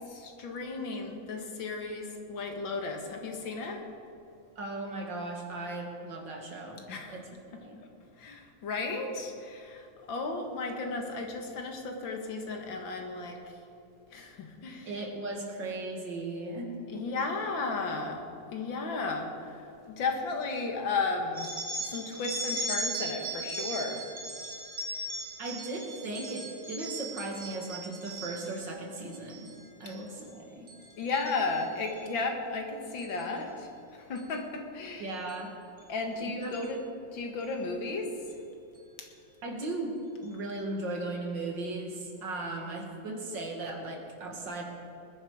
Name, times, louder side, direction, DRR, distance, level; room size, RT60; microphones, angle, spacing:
voice 1, 0.0-3.8 6.9-7.2 7.5-7.6 8.2-13.6 14.1-15.0 16.9-18.3 18.5-21.5 21.8-24.0 29.9-30.0 31.0-35.2 35.9-36.8 37.1-38.1 39.0-39.1, left 3 dB, 75° left, 3 dB, 2.3 m, -34 dB
voice 2, 4.6-7.3 7.6-7.9 14.9-17.0 25.4-29.5 29.8-30.7 35.0-35.5 36.2-36.6 39.4-39.9 40.2-44.6, right 2 dB, 70° right, 1 dB, 2.6 m, -37 dB
sound 1, 21.4-28.7 29.1-29.5 29.8-30.3 30.7-32.0 33.0-33.2 34.2-34.3 35.3-35.4 35.8-35.9 36.4-36.7, right 2 dB, 40° right, 2.5 m, -38 dB
20.0 x 10.0 x 4.8 m, 2.8 s
omnidirectional pair, 2.1 m